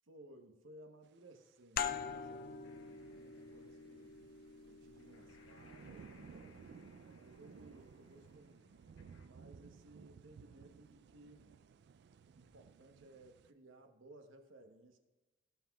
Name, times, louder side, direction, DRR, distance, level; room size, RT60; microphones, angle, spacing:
voice 1, 0.1-4.1 4.7-6.8 7.1-8.7 9.2-11.5 12.3-15.0, right 1 dB, 85° right, 6 dB, 1.0 m, -60 dB
sound 1, 1.8-7.0, left 7 dB, 50° left, 0.4 m, -45 dB
sound 2, 2.1-2.3 2.6-13.5, right 6 dB, 60° right, 0.3 m, -58 dB
sound 3, 2.6-9.3, left 4 dB, 85° left, 1.0 m, -69 dB
17.0 x 5.8 x 2.3 m, 1.2 s
head